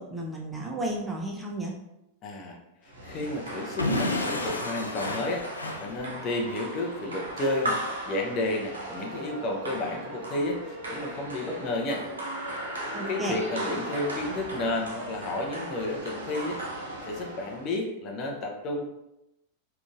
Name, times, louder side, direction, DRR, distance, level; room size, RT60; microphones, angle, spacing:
voice 1, 0.0-1.7 12.9-13.4, right 1 dB, 10° right, -1 dB, 0.5 m, -33 dB
voice 2, 2.2-2.6 2.8-7.8 8.1-12.0 13.1-18.8, left 2 dB, 35° left, 0 dB, 0.6 m, -32 dB
sound 1, 2.9-17.7, right 1 dB, 70° right, 0.8 m, -37 dB
Explosion / Shatter, 3.8-6.6, left 1 dB, 80° left, 0.4 m, -31 dB
3.7 x 2.4 x 2.4 m, 0.88 s
figure-of-eight pair, 90°, 0 cm